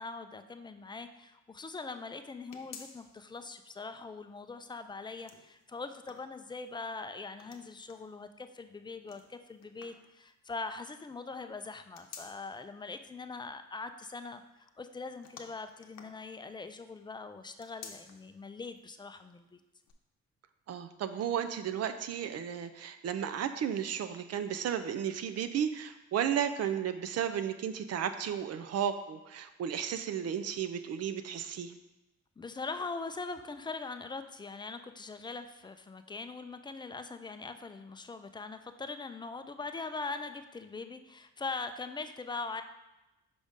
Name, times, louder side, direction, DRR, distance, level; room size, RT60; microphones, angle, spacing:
voice 1, 0.0-19.6 32.4-42.6, left 3 dB, 15° left, 8 dB, 0.4 m, -42 dB
sound 1, 2.5-3.4 3.8-3.9 5.0-6.8 7.4-8.1 9.1-10.1 11.6-12.7 15.2-16.7 17.5-18.3 18.8-18.9 19.8-19.9, left 6 dB, 60° left, 0.8 m, -52 dB
voice 2, 20.7-31.7, right 9 dB, 55° right, 9 dB, 0.5 m, -33 dB
5.3 x 5.1 x 3.6 m, 0.97 s
cardioid pair, 90°, 30 cm